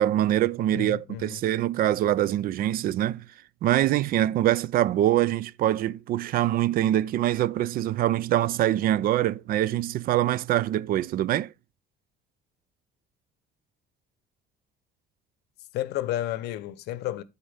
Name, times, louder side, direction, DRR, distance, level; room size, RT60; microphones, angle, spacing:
voice 1, 0.0-3.3 3.6-11.5, right 13 dB, 60° right, 0.4 m, -24 dB
voice 2, 0.7-1.4 15.7-17.2, left 13 dB, 80° left, 0.7 m, -31 dB
12.5 x 4.3 x 3.3 m
cardioid pair, 110°, 17 cm